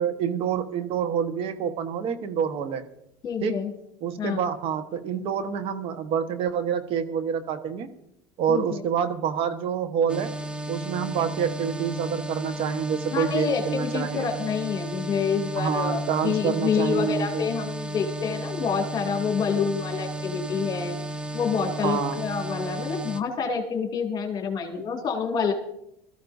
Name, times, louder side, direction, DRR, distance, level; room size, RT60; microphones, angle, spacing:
voice 1, 0.0-2.8 3.4-3.7 4.0-7.9 8.4-10.3 10.7-14.3 15.6-17.5 21.8-22.2, right 7 dB, 55° right, 9 dB, 1.3 m, -27 dB
voice 2, 3.2-3.7 4.2-4.4 8.5-8.8 13.1-20.9 21.3-25.5, left 6 dB, 40° left, 2 dB, 2.5 m, -27 dB
sound 1, 10.1-23.2, right 1 dB, 10° right, 0.9 m, -34 dB
21.5 x 14.5 x 2.7 m, 0.80 s
supercardioid pair, 100°, 11 cm